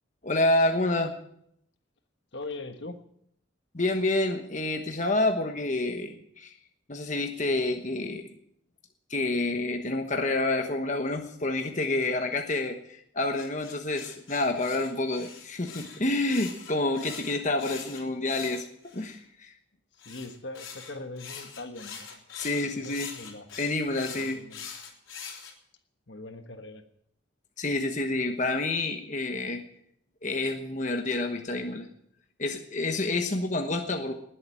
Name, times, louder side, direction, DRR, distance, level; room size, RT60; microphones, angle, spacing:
voice 1, 0.2-1.1 3.7-6.5 6.9-8.3 9.1-18.7 18.9-19.5 22.3-23.1 23.6-24.4 27.6-29.6 30.2-31.9 32.4-34.1, left 2 dB, 40° left, 5 dB, 1.2 m, -28 dB
voice 2, 2.3-3.0 19.9-22.2 22.7-23.5 24.1-24.7 26.1-26.8, left 2 dB, 60° left, 7 dB, 1.4 m, -41 dB
sound 1, 13.3-19.2 20.0-25.5, left 6 dB, 80° left, 3.7 m, -43 dB
19.5 x 8.0 x 9.0 m, 0.70 s
head